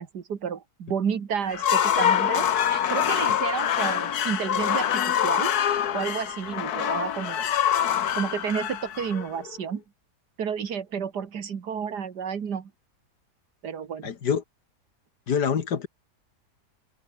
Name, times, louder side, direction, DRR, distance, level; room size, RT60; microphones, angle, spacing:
voice 1, 0.0-5.5 5.9-7.5 8.2-9.8 10.4-12.7 13.6-14.1, right 7 dB, 85° right, 2.3 m, -31 dB
sound 1, 1.5-9.6, left 9 dB, 70° left, 1.6 m, -25 dB
voice 2, 14.0-14.4 15.3-15.9, left 7 dB, 90° left, 2.3 m, -25 dB
open air
omnidirectional pair, 1.7 m